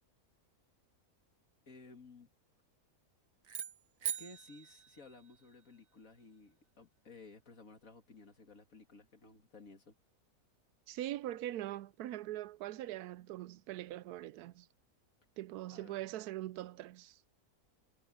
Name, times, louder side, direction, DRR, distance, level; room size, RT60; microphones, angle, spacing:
voice 1, 1.7-2.3 4.2-9.9 15.7-16.1, left 3 dB, 60° left, 2.7 m, -56 dB
sound 1, 3.4-5.8, right 9 dB, 65° right, 1.6 m, -43 dB
voice 2, 10.9-14.7 15.4-17.2, right 14 dB, 90° right, 1.1 m, -42 dB
omnidirectional pair, 1.6 m